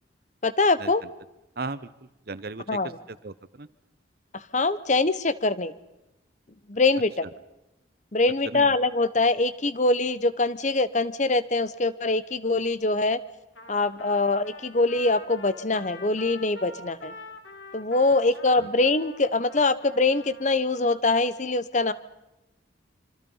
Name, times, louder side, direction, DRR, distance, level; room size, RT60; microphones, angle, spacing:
voice 1, 0.4-1.0 2.7-3.0 4.3-5.7 6.7-7.2 8.1-13.2 13.7-17.1 17.7-21.9, left 3 dB, 40° left, 15 dB, 1.0 m, -23 dB
voice 2, 1.6-1.9 2.3-2.8 3.1-3.7 8.4-8.8 18.5-18.7, right 3 dB, 50° right, 16 dB, 0.9 m, -36 dB
Trumpet, 13.6-20.7, left 2 dB, 85° left, 3.1 m, -46 dB
26.5 x 25.0 x 5.6 m, 0.94 s
head